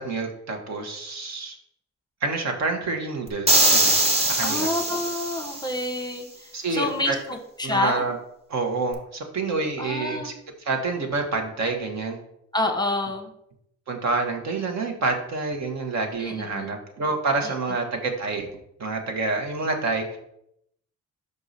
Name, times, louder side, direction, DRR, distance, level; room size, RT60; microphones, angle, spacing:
voice 1, 0.0-1.6 2.2-4.7 6.5-7.2 7.6-8.2 8.5-10.3 10.6-12.2 13.9-18.5 18.8-20.2, right 3 dB, 60° right, 4 dB, 1.3 m, -28 dB
sound 1, 3.5-5.8, right 1 dB, 20° right, 1.0 m, -21 dB
voice 2, 4.4-8.0 9.8-10.3 12.5-13.3 16.2-16.7 17.4-17.5, left 2 dB, 15° left, 4 dB, 0.9 m, -28 dB
5.4 x 4.8 x 4.1 m, 0.75 s
cardioid pair, 90°, 30 cm